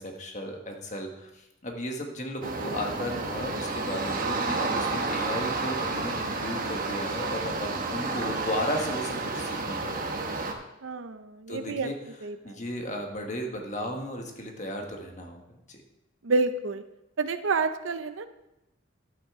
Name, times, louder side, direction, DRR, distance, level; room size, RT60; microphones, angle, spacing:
voice 1, 0.0-10.0 11.5-11.9 12.4-15.8, equal, 35° left, 2 dB, 1.4 m, -35 dB
sound 1, 2.4-10.5, right 3 dB, 45° right, 1.1 m, -31 dB
voice 2, 10.8-11.9 12.2-12.4 16.2-16.8 17.2-18.3, right 3 dB, 80° right, 10 dB, 0.7 m, -28 dB
11.5 x 8.9 x 3.6 m, 0.92 s
head